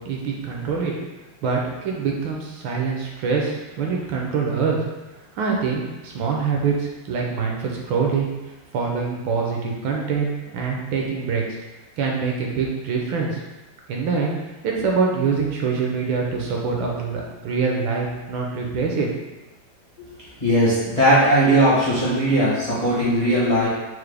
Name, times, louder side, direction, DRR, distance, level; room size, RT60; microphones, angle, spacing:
voice 1, 0.0-0.9 1.4-4.8 5.3-8.3 8.7-11.6 12.0-13.4 13.9-14.3 14.6-19.1, right 5 dB, 75° right, -1 dB, 1.2 m, -24 dB
voice 2, 20.4-23.7, right 1 dB, 40° left, -10 dB, 0.5 m, -18 dB
4.6 x 2.1 x 3.2 m, 1.1 s
omnidirectional pair, 2.3 m